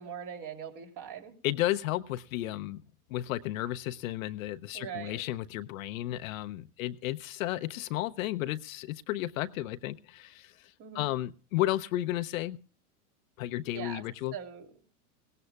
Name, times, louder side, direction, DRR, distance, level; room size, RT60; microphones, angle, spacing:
voice 1, 0.0-1.3 4.7-5.2 10.8-11.0 13.7-14.0 14.3-14.7, right 8 dB, 45° right, 5 dB, 3.0 m, -41 dB
voice 2, 1.4-2.8 3.1-12.6 13.4-14.4, left 15 dB, 65° left, 10 dB, 0.7 m, -33 dB
19.0 x 17.0 x 2.3 m, 0.38 s
hypercardioid pair, 100°, 45 cm